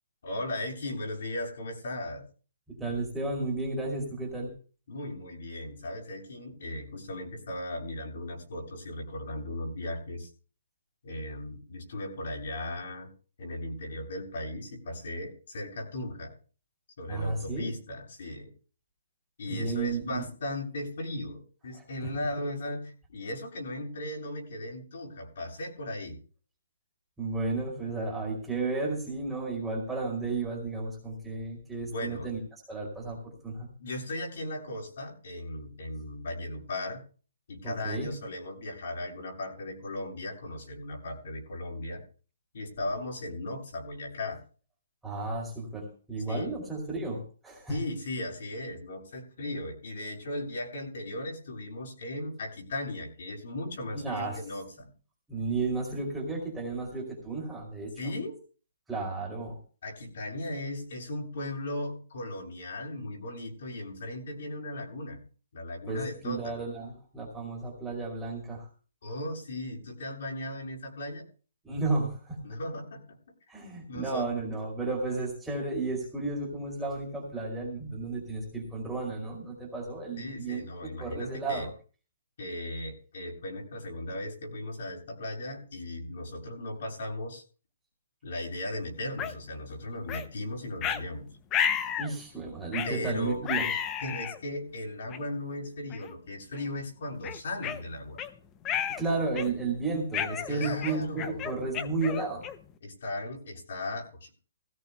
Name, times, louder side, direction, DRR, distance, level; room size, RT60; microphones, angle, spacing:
voice 1, 0.2-2.2 4.9-10.3 11.0-13.1 13.4-16.3 17.0-18.5 19.4-26.2 31.9-32.3 33.8-37.0 37.5-42.0 42.5-44.4 46.3-46.5 47.7-54.7 58.0-58.4 59.8-65.2 65.5-66.6 69.0-71.3 72.4-73.2 73.9-74.3 80.2-81.7 82.4-87.4 88.2-91.3 92.8-93.4 94.0-98.2 100.5-101.5 102.8-104.3, left 1 dB, 60° left, -1 dB, 7.1 m, -37 dB
voice 2, 2.7-4.5 17.1-17.7 19.5-20.2 21.7-22.1 27.2-32.4 32.7-33.7 37.6-38.1 45.0-47.8 53.9-54.4 55.3-57.9 58.9-59.6 65.9-68.7 71.6-72.4 73.5-80.6 81.0-81.7 92.0-93.6 99.0-102.5, right 3 dB, 5° right, -3 dB, 2.6 m, -33 dB
sound 1, 89.2-89.3 90.1-90.3 90.8-91.0 91.5-92.1 92.7-93.0 93.4-94.4 95.1-95.2 95.9-96.1 96.5-96.7 97.2-98.3 98.6-99.0 99.3-99.7 100.1-102.7, left 8 dB, 15° left, 0.5 m, -32 dB
18.0 x 16.0 x 2.2 m, 0.38 s
hypercardioid pair, 175°, 0 cm